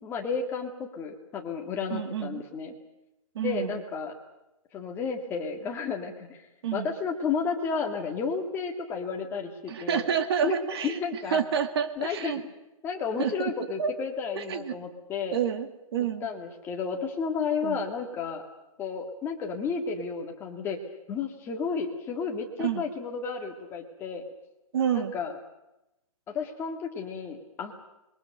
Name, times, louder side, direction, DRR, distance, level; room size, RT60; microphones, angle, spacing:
voice 1, 0.0-2.7 3.4-4.1 4.7-6.5 6.7-10.1 10.4-10.6 10.8-11.4 12.0-12.4 12.8-15.4 16.2-18.4 18.8-20.8 21.1-24.2 24.9-25.4 26.3-27.7, left 5 dB, 10° left, 2 dB, 2.0 m, -32 dB
voice 2, 1.9-2.4 3.4-3.8 6.6-6.9 9.7-11.0 11.3-12.4 13.2-13.5 13.8-13.9 14.4-14.8 15.3-16.3 17.6-17.8 22.6-22.8 24.7-25.1, right 8 dB, 45° right, 8 dB, 2.1 m, -29 dB
26.0 x 22.5 x 6.6 m, 0.93 s
hypercardioid pair, 165°, 19 cm